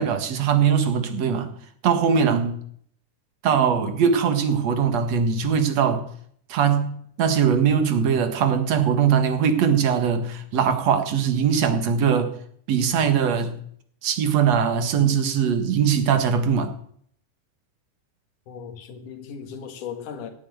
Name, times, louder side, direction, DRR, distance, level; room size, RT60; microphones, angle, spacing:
voice 1, 0.0-1.5 1.8-2.6 3.4-6.1 6.5-12.3 12.7-13.5 14.0-16.7, right 7 dB, 60° right, 2.7 m, -21 dB
voice 2, 18.5-20.3, left 7 dB, 80° left, 3.2 m, -37 dB
17.0 x 8.5 x 9.6 m
omnidirectional pair, 3.6 m